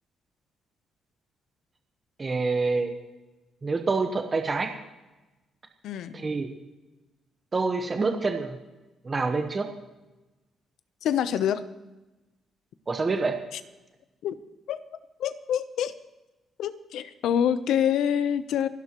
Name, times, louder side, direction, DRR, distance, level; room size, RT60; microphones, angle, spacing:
voice 1, 2.2-2.9 3.6-4.7 6.1-6.5 7.5-8.6 9.0-9.7 12.9-13.4, right 3 dB, 25° right, 5 dB, 1.2 m, -26 dB
voice 2, 5.8-6.2 11.0-11.7 14.2-14.4 14.7-14.8 15.2-16.0 16.6-18.7, left 9 dB, 80° left, 13 dB, 0.8 m, -26 dB
28.5 x 12.0 x 3.1 m, 1.1 s
cardioid pair, 130°, 0 cm